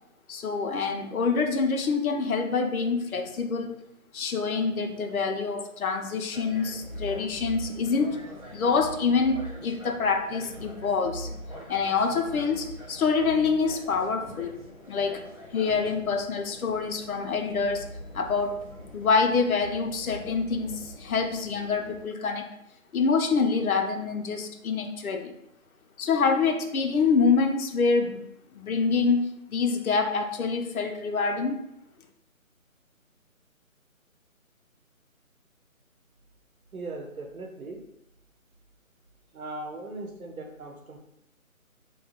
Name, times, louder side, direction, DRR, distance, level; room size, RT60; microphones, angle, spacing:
voice 1, 0.3-3.8 4.1-8.2 8.5-11.3 11.7-14.5 14.9-15.2 15.5-17.9 18.1-18.6 18.9-22.5 22.9-25.3 26.0-28.3 28.5-31.6, left 4 dB, 80° left, 5 dB, 0.6 m, -26 dB
sound 1, 6.3-22.0, equal, 25° right, 0.6 m, -43 dB
voice 2, 36.7-37.8 39.3-41.0, right 2 dB, 75° right, 3 dB, 0.8 m, -38 dB
2.7 x 2.2 x 2.8 m, 0.78 s
figure-of-eight pair, 160°, 42 cm